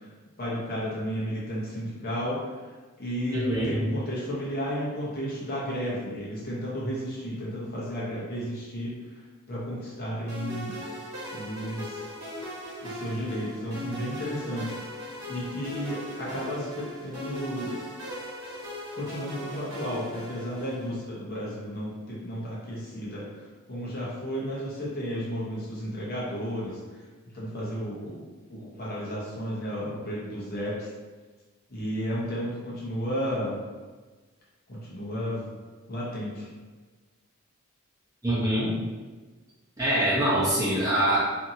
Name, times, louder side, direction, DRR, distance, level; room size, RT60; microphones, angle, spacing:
voice 1, 0.4-2.5 3.0-3.4 3.6-8.9 9.5-10.8 11.3-12.1 12.8-14.8 15.3-17.8 18.9-23.2 23.7-26.8 27.3-28.2 28.5-30.9 31.7-33.6 34.7-35.5 35.9-36.5, equal, 40° left, -6 dB, 0.7 m, -33 dB
voice 2, 3.3-3.8 38.2-38.7 39.8-41.2, right 1 dB, 15° right, -9 dB, 0.7 m, -24 dB
sound 1, 10.3-21.0, equal, 80° right, 0.9 m, -39 dB
2.7 x 2.6 x 2.7 m, 1.3 s
head